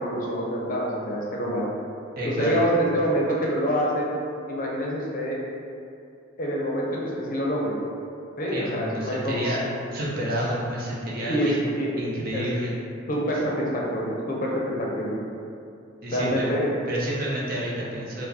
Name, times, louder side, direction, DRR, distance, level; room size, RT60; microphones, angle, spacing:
voice 1, 0.0-1.7 2.2-4.1 4.5-5.4 6.4-7.8 8.4-9.4 11.2-12.1 12.3-12.5 13.1-15.2 16.1-16.7, equal, 45° left, -3 dB, 0.6 m, -26 dB
voice 2, 2.2-2.6 8.5-9.6 9.9-11.6 12.0-12.7 16.0-16.5 16.9-18.3, equal, 50° right, -6 dB, 0.7 m, -29 dB
4.5 x 2.1 x 2.7 m, 2.5 s
head